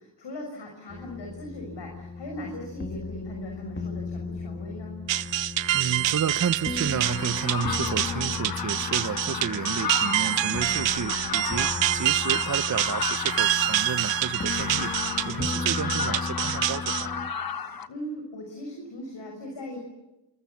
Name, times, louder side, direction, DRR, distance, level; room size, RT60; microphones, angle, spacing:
voice 1, 0.0-5.0 15.2-15.6 17.4-19.8, left 1 dB, 65° left, 6.6 m, -39 dB
sound 1, 0.9-17.3, left 4 dB, 25° left, 2.2 m, -36 dB
sound 2, 5.1-17.1, right 13 dB, 75° right, 0.9 m, -27 dB
voice 2, 5.7-14.9 15.3-17.1, right 7 dB, 40° right, 1.0 m, -32 dB
sound 3, 7.0-17.9, left 6 dB, 50° left, 1.4 m, -33 dB
27.5 x 25.0 x 7.3 m
cardioid pair, 65°, 45 cm